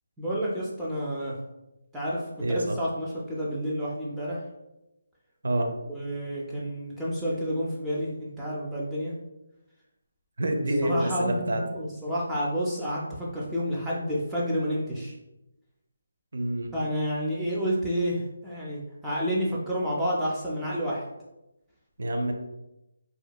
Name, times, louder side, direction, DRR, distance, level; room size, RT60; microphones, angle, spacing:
voice 1, 0.2-1.3 1.9-2.2 2.5-4.4 5.9-9.1 10.8-15.1 16.7-21.0, equal, 5° right, -7 dB, 0.3 m, -29 dB
voice 2, 2.4-2.8 5.4-5.7 10.4-11.6 16.3-16.7 22.0-22.3, right 1 dB, 70° right, 4 dB, 0.4 m, -27 dB
2.8 x 2.1 x 2.2 m, 0.93 s
hypercardioid pair, 165°, 0 cm